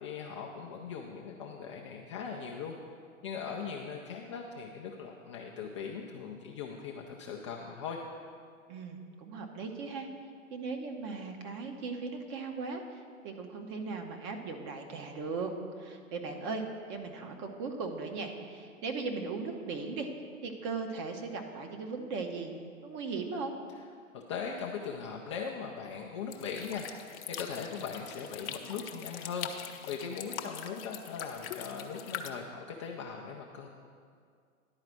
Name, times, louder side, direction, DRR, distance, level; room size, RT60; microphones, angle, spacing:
voice 1, 0.0-2.8 3.2-8.0 24.1-26.9 27.3-33.7, left 6 dB, 25° left, -1 dB, 0.4 m, -40 dB
voice 2, 8.7-10.1 10.5-15.5 15.8-16.6 16.9-20.1 20.4-22.5 22.8-23.5, right 4 dB, 35° right, 4 dB, 1.0 m, -38 dB
sound 1, 26.3-32.3, left 9 dB, 45° left, 0.7 m, -42 dB
10.5 x 4.8 x 7.5 m, 2.2 s
figure-of-eight pair, 115°, 42 cm